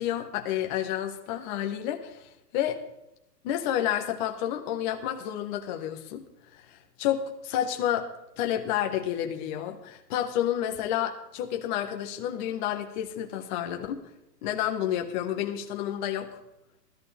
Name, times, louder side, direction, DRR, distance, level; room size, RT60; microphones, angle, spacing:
voice 1, 0.0-2.8 3.4-6.2 6.5-8.1 8.4-14.0 14.4-16.4, left 11 dB, 30° left, 4 dB, 1.4 m, -30 dB
16.0 x 14.0 x 3.5 m, 0.86 s
hypercardioid pair, 145°, 49 cm